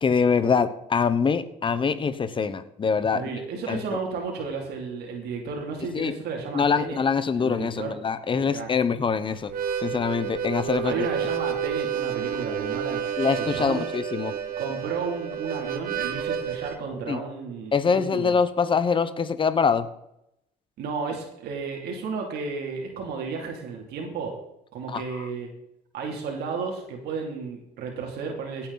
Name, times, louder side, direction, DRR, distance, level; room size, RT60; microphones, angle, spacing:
voice 1, 0.0-3.2 3.7-3.8 5.9-6.1 6.5-9.5 9.8-11.1 13.2-14.3 17.1-17.2 17.7-19.9 24.9-25.3, left 5 dB, 30° left, 13 dB, 1.0 m, -24 dB
voice 2, 3.1-7.0 7.4-7.9 8.4-8.7 10.8-13.0 13.4-13.8 14.6-18.3 20.8-24.3 24.7-25.5 25.9-28.7, right 5 dB, 75° right, 1 dB, 2.9 m, -33 dB
Harmonica, 9.4-16.8, right 8 dB, 60° right, 1.3 m, -30 dB
17.0 x 8.8 x 4.1 m, 0.82 s
cardioid pair, 110°, 17 cm